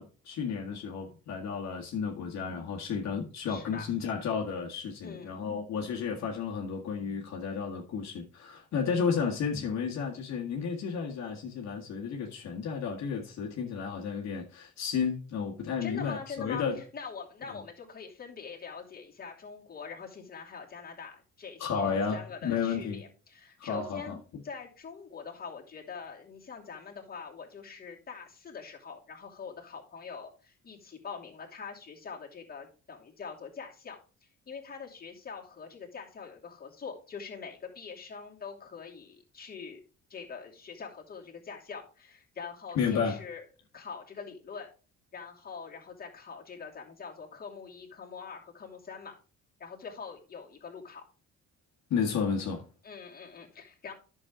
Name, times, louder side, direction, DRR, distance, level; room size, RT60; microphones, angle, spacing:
voice 1, 0.0-16.8 17.5-17.6 21.6-23.0 23.6-24.2 42.8-43.2 51.9-52.7, left 6 dB, 60° left, 1.8 m, -32 dB
voice 2, 3.5-3.9 5.0-5.4 15.8-16.7 16.9-24.2 24.4-39.8 40.1-43.4 43.7-44.7 45.1-49.2 49.6-51.0 52.8-53.9, left 5 dB, 30° left, 2.7 m, -44 dB
11.0 x 6.6 x 3.7 m
cardioid pair, 130°, 30 cm